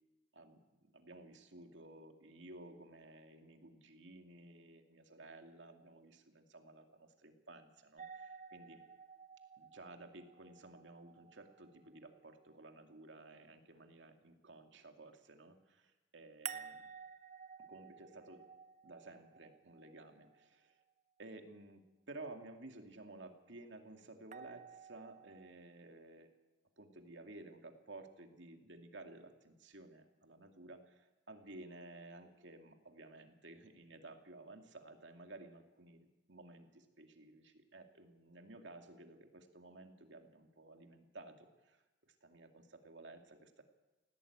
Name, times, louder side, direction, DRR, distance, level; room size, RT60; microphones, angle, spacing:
voice 1, 0.9-8.8 9.6-15.8 16.1-16.7 17.6-18.4 18.8-20.7 21.2-26.3 26.8-41.8 42.2-43.6, right 2 dB, 65° right, 5 dB, 2.5 m, -54 dB
sound 1, 8.0-12.9 16.5-20.6 24.3-25.5, right 7 dB, 35° right, 0.9 m, -53 dB
19.5 x 17.0 x 8.8 m, 1.1 s
head